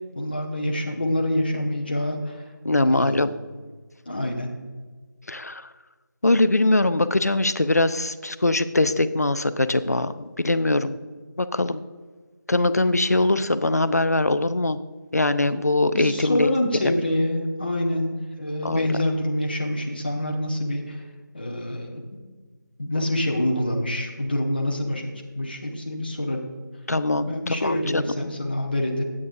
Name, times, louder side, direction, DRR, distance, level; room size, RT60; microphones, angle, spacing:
voice 1, 0.1-2.4 2.9-3.3 4.1-4.5 15.9-21.0 21.3-22.0 22.8-26.5 27.3-29.0, left 1 dB, 30° left, 1 dB, 0.9 m, -26 dB
voice 2, 2.6-3.3 5.3-5.7 6.2-10.1 10.4-11.0 11.4-11.8 12.5-14.8 15.1-16.5 16.8-16.9 18.6-19.0 26.9-28.0, left 2 dB, 50° left, 13 dB, 0.5 m, -22 dB
13.0 x 8.6 x 2.6 m, 1.4 s
figure-of-eight pair, 170°, 11 cm